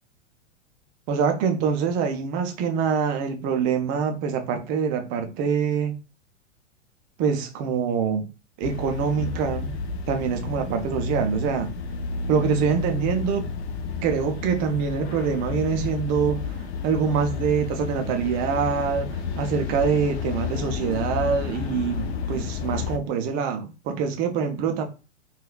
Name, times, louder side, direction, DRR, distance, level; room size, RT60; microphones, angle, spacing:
voice 1, 1.1-6.0 7.2-8.3 8.6-9.8 10.1-11.7 12.3-13.5 14.0-16.6 16.8-24.9, right 6 dB, 25° right, 0.4 m, -25 dB
sound 1, 8.6-23.0, left 5 dB, 55° left, 0.6 m, -31 dB
3.5 x 2.3 x 2.3 m
hypercardioid pair, 110°, 38 cm